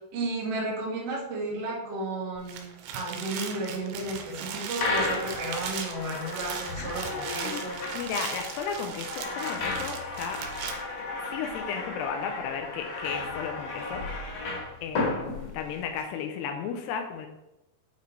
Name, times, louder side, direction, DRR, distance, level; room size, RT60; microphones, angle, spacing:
voice 1, 0.1-7.8, right 2 dB, 55° right, -4 dB, 1.7 m, -33 dB
sound 1, 2.4-10.7, right 7 dB, 90° right, 3.0 m, -38 dB
sound 2, 4.8-16.0, left 3 dB, 60° left, 2.4 m, -34 dB
voice 2, 6.8-7.6 7.9-10.4 11.2-14.0 14.8-17.3, left 7 dB, 80° left, 5 dB, 2.5 m, -34 dB
8.3 x 4.6 x 3.2 m, 0.90 s
omnidirectional pair, 5.1 m